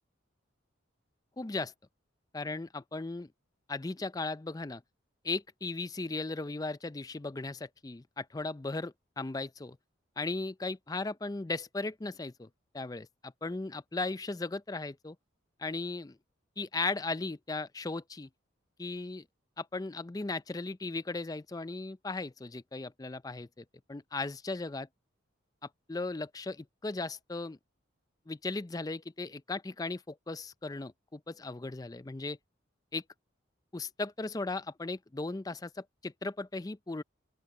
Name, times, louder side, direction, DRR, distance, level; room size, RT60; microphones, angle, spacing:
voice 1, 1.4-1.7 2.3-3.3 3.7-4.8 5.2-9.8 10.2-12.5 12.7-15.2 15.6-16.2 16.6-18.3 18.8-19.2 19.6-24.9 25.9-27.6 28.3-32.4 32.9-33.0 33.7-37.0, left 3 dB, 20° left, 0.4 m, -37 dB
open air
head